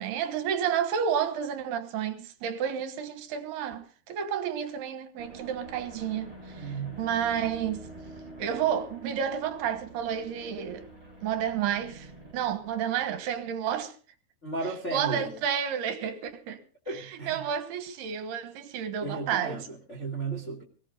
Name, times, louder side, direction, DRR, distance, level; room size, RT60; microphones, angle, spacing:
voice 1, 0.0-7.9 8.4-10.9 11.2-13.9 14.9-16.6 16.9-19.7, right 8 dB, 70° right, 2.7 m, -31 dB
sound 1, 5.2-13.8, right 2 dB, 15° right, 3.5 m, -47 dB
voice 2, 6.5-7.0 14.4-15.3 16.8-17.4 19.0-20.6, right 3 dB, 55° left, 0.7 m, -34 dB
23.0 x 17.5 x 2.6 m
omnidirectional pair, 5.8 m